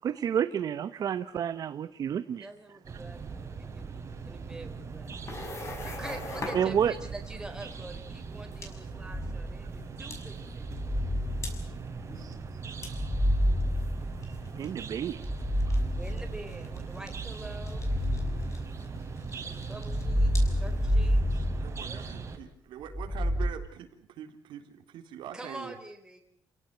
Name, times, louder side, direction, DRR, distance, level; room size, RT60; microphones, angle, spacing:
voice 1, 0.0-2.5 6.5-6.9 12.2-12.3 14.6-15.2 15.7-15.8, right 9 dB, 50° right, 11 dB, 1.0 m, -30 dB
voice 2, 2.3-3.9 4.2-5.3 5.6-10.9 16.0-17.9 19.4-21.4 21.8-22.2 25.3-26.2, right 2 dB, 10° right, 4 dB, 4.2 m, -45 dB
sound 1, 2.8-22.4, right 5 dB, 35° right, 4.0 m, -40 dB
sound 2, 4.9-21.2, left 2 dB, 35° left, 6.2 m, -46 dB
sound 3, 9.1-9.8 10.6-12.2 12.8-14.6 15.1-16.7 17.5-19.2 19.8-22.3 22.9-23.5, equal, 5° left, 3.3 m, -29 dB
voice 3, 21.6-25.7, right 9 dB, 90° right, 5 dB, 3.9 m, -44 dB
29.0 x 17.5 x 7.9 m, 0.66 s
cardioid pair, 145°, 8 cm